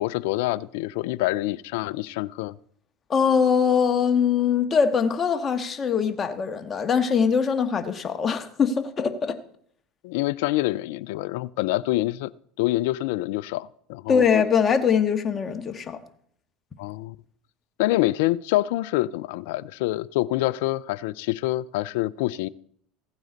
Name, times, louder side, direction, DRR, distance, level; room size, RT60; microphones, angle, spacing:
voice 1, 0.0-2.5 10.0-12.3 12.6-14.2 16.8-17.2 17.8-22.5, left 17 dB, 75° left, 0.4 m, -26 dB
voice 2, 3.1-9.4 14.1-16.0, left 6 dB, 35° left, 1.5 m, -22 dB
16.5 x 8.9 x 4.1 m
hypercardioid pair, 85°, 0 cm